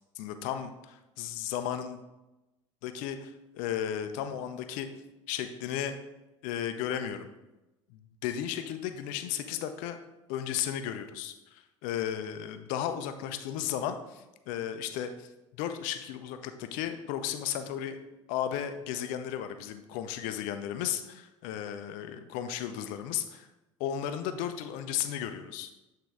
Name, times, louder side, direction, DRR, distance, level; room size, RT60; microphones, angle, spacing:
voice 1, 0.2-2.0 2.8-4.9 5.3-6.0 6.4-7.3 7.9-10.0 10.3-18.0 18.3-23.5 23.8-25.7, left 10 dB, 55° left, 8 dB, 0.5 m, -34 dB
8.0 x 3.7 x 3.4 m, 1.0 s
figure-of-eight pair, 65°, 16 cm